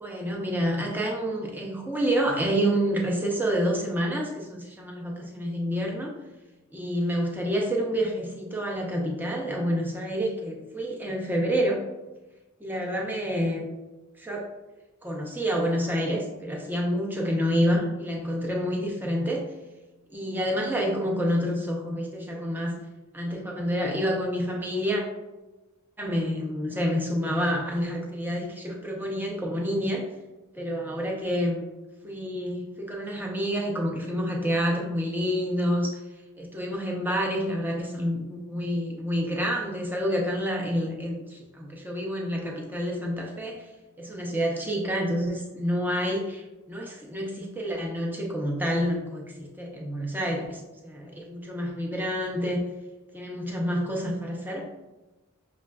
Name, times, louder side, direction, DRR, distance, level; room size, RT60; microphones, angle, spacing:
voice 1, 0.0-6.1 6.7-11.8 12.6-13.7 14.2-14.5 15.0-19.4 20.1-22.8 23.1-25.0 26.0-30.0 30.6-31.6 32.0-36.0 36.4-43.6 44.0-52.6 53.1-54.7, equal, 10° right, -1 dB, 0.4 m, -28 dB
5.8 x 2.2 x 2.2 m, 1.1 s
head